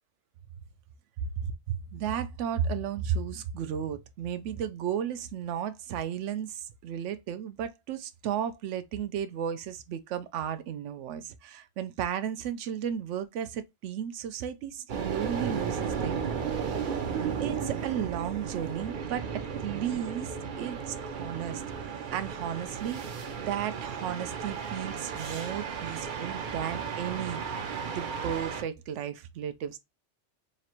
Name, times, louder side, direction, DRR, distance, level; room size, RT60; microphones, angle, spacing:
voice 1, 1.2-17.0 17.4-21.6 22.1-27.4 27.9-29.8, right 8 dB, 80° right, 0.9 m, -34 dB
sound 1, 14.9-28.6, right 6 dB, 55° right, 0.7 m, -34 dB
3.1 x 2.5 x 4.3 m
omnidirectional pair, 1.2 m